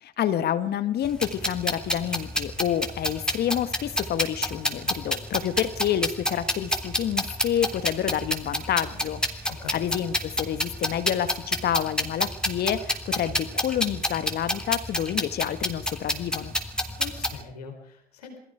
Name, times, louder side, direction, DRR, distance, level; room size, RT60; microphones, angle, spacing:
voice 1, 0.0-16.5, left 10 dB, 55° left, 13 dB, 1.6 m, -28 dB
sound 1, 1.0-17.4, left 1 dB, 5° left, 3.5 m, -28 dB
voice 2, 9.5-9.9 16.9-18.4, left 6 dB, 85° left, 4 dB, 4.4 m, -42 dB
28.0 x 19.5 x 5.1 m, 0.69 s
hypercardioid pair, 55°, 20 cm